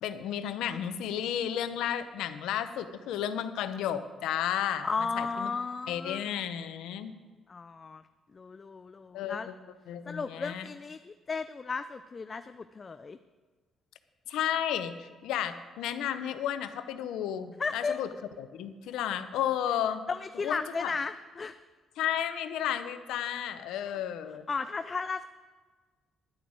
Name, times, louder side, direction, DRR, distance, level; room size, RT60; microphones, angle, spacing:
voice 1, 0.0-4.9 5.2-5.5 5.9-7.1 9.1-9.5 9.9-10.7 14.3-14.9 15.2-18.1 18.4-20.0 20.3-20.9 22.0-24.4, left 10 dB, 90° left, 10 dB, 0.7 m, -32 dB
voice 2, 4.8-6.4 7.5-8.0 8.3-9.5 10.1-13.2 17.6-18.0 20.1-21.6 23.8-24.0 24.5-25.3, left 4 dB, 35° left, 10 dB, 0.4 m, -35 dB
11.0 x 6.2 x 8.8 m, 1.4 s
cardioid pair, 90°, 0 cm